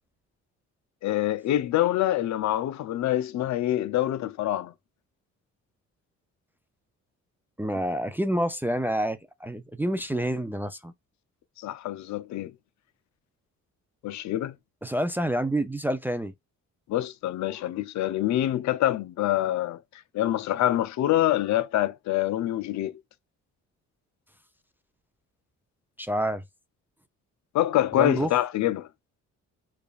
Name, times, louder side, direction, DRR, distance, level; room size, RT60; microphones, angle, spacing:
voice 1, 1.0-4.7 11.6-12.5 14.0-14.6 16.9-19.8 20.1-23.0 27.5-28.9, left 13 dB, 65° left, 0.5 m, -26 dB
voice 2, 7.6-10.9 14.8-16.3 26.0-26.4 28.0-28.3, right 1 dB, 5° right, 0.4 m, -28 dB
5.0 x 2.4 x 2.3 m
cardioid pair, 90°, 30 cm